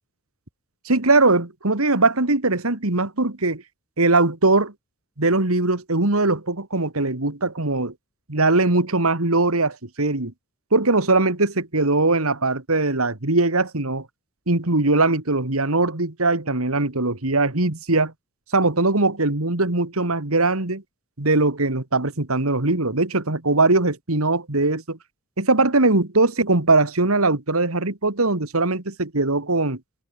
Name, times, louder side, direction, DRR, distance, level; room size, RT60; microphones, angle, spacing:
voice 1, 0.9-3.6 4.0-4.7 5.2-7.9 8.3-10.3 10.7-14.1 14.5-18.1 18.5-20.8 21.2-25.0 25.4-29.8, right 2 dB, 85° right, 2.6 m, -21 dB
head